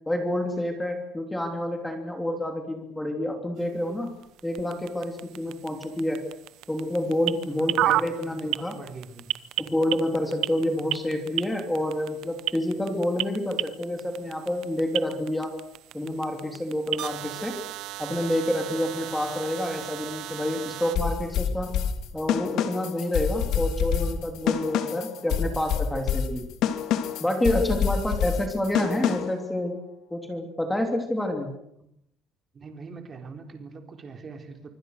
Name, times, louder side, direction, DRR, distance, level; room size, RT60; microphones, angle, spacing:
voice 1, 0.1-4.1 4.4-6.2 6.7-8.8 9.6-15.6 15.9-17.5 18.0-21.7 22.1-26.4 27.2-29.8 30.1-31.5, left 1 dB, 5° left, 4 dB, 3.1 m, -28 dB
sound 1, 3.6-21.0, right 15 dB, 65° right, 1.0 m, -34 dB
voice 2, 7.5-9.3 32.5-34.7, right 4 dB, 25° right, 5 dB, 3.9 m, -43 dB
sound 2, 20.9-29.4, left 8 dB, 60° left, 2.9 m, -27 dB
25.5 x 25.0 x 6.6 m, 0.76 s
cardioid pair, 165°, 0 cm